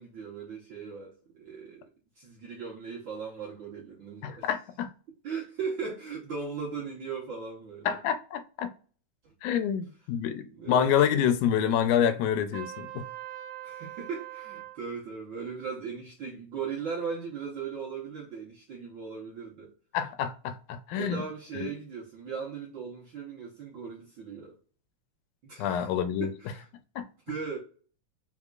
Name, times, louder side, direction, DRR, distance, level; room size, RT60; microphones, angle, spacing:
voice 1, 0.0-1.9 2.2-4.5 5.2-8.0 10.5-10.9 13.6-19.7 20.9-24.5 25.4-25.9 26.2-26.6 27.3-27.6, right 5 dB, 60° right, 1.3 m, -38 dB
voice 2, 4.2-4.9 7.9-8.7 9.4-13.0 19.9-21.2 21.5-21.7 25.6-26.3 27.0-27.1, left 9 dB, 85° left, 2.1 m, -27 dB
Trumpet, 12.5-14.8, right 13 dB, 90° right, 2.2 m, -42 dB
4.8 x 3.6 x 2.4 m
omnidirectional pair, 3.5 m